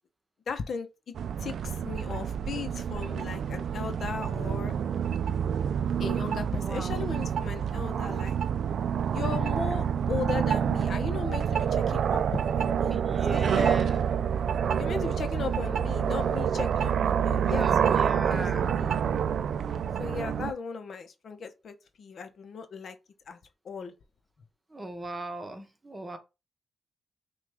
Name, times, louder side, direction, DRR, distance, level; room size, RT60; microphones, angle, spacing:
voice 1, 0.5-0.9 1.4-4.7 6.0-8.4 9.1-12.2 12.5-13.7 14.8-18.9 20.0-23.0 23.3-23.4 23.6-23.9, left 5 dB, 60° left, 0.7 m, -37 dB
sound 1, 1.2-20.5, right 8 dB, 75° right, 0.3 m, -28 dB
voice 2, 6.5-7.0 12.9-14.0 17.5-18.7 24.7-26.2, right 2 dB, 20° right, 0.9 m, -36 dB
5.9 x 2.3 x 3.4 m
cardioid pair, 90°, 0 cm